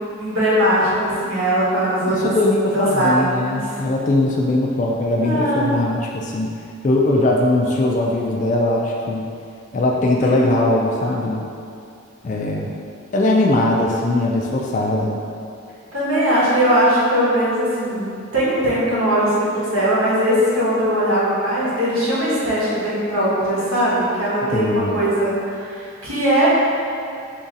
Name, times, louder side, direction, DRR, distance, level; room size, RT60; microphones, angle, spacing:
voice 1, 0.2-2.3 2.7-3.7 5.2-5.7 10.2-10.4 15.9-26.6, right 1 dB, 80° right, -8 dB, 1.1 m, -20 dB
voice 2, 2.1-6.5 6.8-9.3 9.7-11.5 12.2-12.7 13.1-15.2 24.5-25.0, left 2 dB, 35° left, -1 dB, 0.3 m, -20 dB
3.0 x 2.7 x 3.7 m, 2.5 s
head